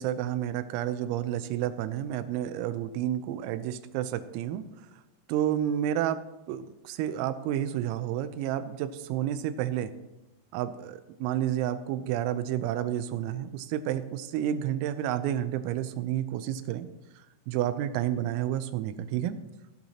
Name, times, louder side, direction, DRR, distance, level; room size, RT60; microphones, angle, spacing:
voice 1, 0.0-4.6 5.3-6.2 6.5-9.9 10.5-16.9 17.5-19.4, right 11 dB, 90° right, 12 dB, 3.4 m, -30 dB
17.5 x 10.5 x 2.8 m, 1.1 s
omnidirectional pair, 5.9 m